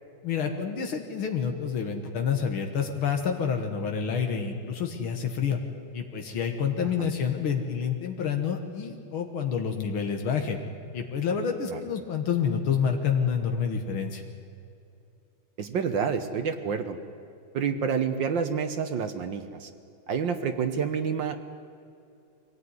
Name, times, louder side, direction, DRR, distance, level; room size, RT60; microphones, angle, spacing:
voice 1, 0.2-5.6 5.9-10.6 10.9-14.2, left 7 dB, 85° left, 4 dB, 2.3 m, -28 dB
voice 2, 15.6-17.0 17.5-19.7 20.1-21.4, right 6 dB, 65° right, 7 dB, 1.7 m, -28 dB
23.5 x 17.0 x 9.7 m, 2.6 s
omnidirectional pair, 2.2 m